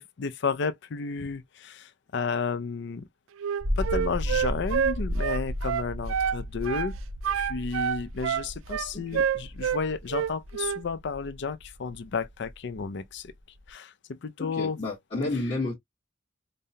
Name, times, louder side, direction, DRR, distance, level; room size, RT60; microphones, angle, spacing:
voice 1, 0.0-3.1 3.8-6.9 7.3-13.3 13.7-14.8, left 5 dB, 60° left, 0.5 m, -32 dB
Wind instrument woodwind instrument, 3.4-6.4 6.6-6.9 7.2-9.8 10.1-10.8, right 8 dB, 85° right, 0.3 m, -28 dB
sound 1, 3.6-13.7, equal, 40° right, 0.7 m, -34 dB
voice 2, 14.4-15.7, left 2 dB, 30° left, 1.1 m, -31 dB
5.2 x 2.1 x 2.7 m
head